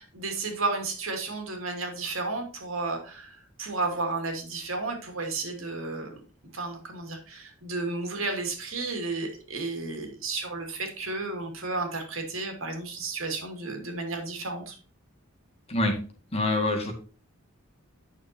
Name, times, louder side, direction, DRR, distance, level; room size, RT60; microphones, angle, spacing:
voice 1, 0.0-6.2 6.5-14.7, right 3 dB, 80° right, 4 dB, 2.5 m, -32 dB
voice 2, 16.3-16.9, left 2 dB, 30° left, 2 dB, 1.9 m, -25 dB
9.3 x 6.5 x 2.8 m, 0.37 s
head